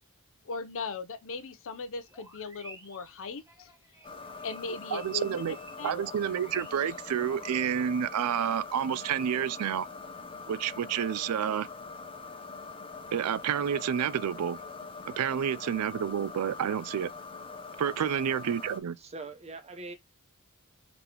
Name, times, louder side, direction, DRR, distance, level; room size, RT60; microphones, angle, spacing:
voice 1, 0.5-3.7 4.4-5.3 5.8-6.0, left 4 dB, 65° left, 0.6 m, -38 dB
sound 1, 2.0-7.5, right 1 dB, 15° right, 1.4 m, -52 dB
sound 2, 4.0-18.8, left 4 dB, 25° left, 0.6 m, -43 dB
voice 2, 4.9-5.6 5.8-9.9 10.5-11.7 13.1-14.6 15.1-17.1 17.8-19.0, right 8 dB, 80° right, 0.4 m, -29 dB
voice 3, 19.0-19.9, right 3 dB, 30° right, 0.7 m, -43 dB
4.0 x 3.4 x 2.9 m
head